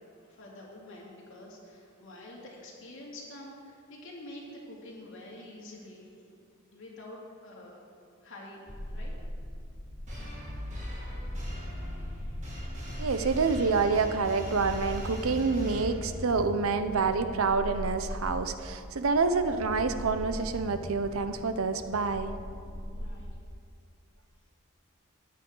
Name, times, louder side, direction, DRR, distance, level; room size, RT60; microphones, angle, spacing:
voice 1, 0.0-6.4 6.7-7.8 8.2-9.2 22.9-23.4, left 1 dB, 65° left, -3 dB, 2.5 m, -47 dB
sound 1, 8.7-23.4, equal, 15° left, 1.4 m, -40 dB
sound 2, 10.1-16.4, equal, 35° right, 2.4 m, -41 dB
voice 2, 13.0-22.3, right 4 dB, 70° right, 9 dB, 0.7 m, -27 dB
13.5 x 9.4 x 3.9 m, 2.3 s
head